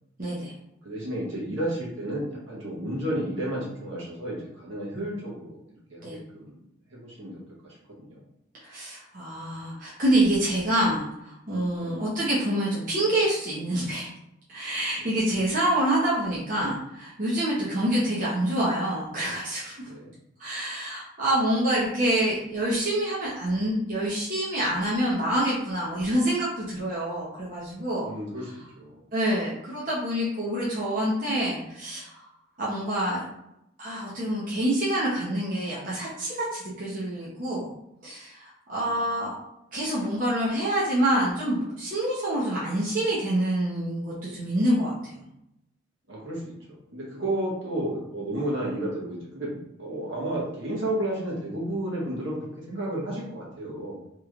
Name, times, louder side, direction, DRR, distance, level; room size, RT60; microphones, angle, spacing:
voice 1, 0.2-0.5 6.0-6.2 8.6-14.1 14.5-19.7 20.4-28.1 29.1-32.1 32.6-33.2 33.8-37.7 38.0-39.4 39.7-45.2, right 1 dB, 40° right, -7 dB, 0.7 m, -26 dB
voice 2, 0.8-5.6 5.9-6.6 6.9-8.2 11.8-12.0 15.0-15.2 17.6-17.7 19.8-20.1 28.0-28.5 28.8-29.0 38.7-39.0 46.1-46.5 46.9-54.0, right 1 dB, 70° right, -4 dB, 1.1 m, -32 dB
3.1 x 3.0 x 2.4 m, 0.82 s
head